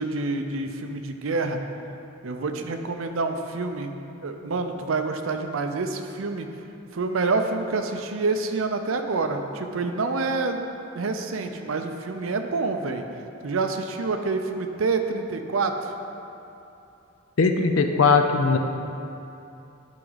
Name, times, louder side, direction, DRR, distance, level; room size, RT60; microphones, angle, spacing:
voice 1, 0.0-1.6 2.2-3.9 4.2-6.5 6.9-13.0 13.4-15.9, right 3 dB, 75° right, 6 dB, 0.6 m, -27 dB
voice 2, 17.4-18.6, left 4 dB, 75° left, 5 dB, 0.6 m, -19 dB
10.5 x 4.8 x 4.0 m, 2.8 s
head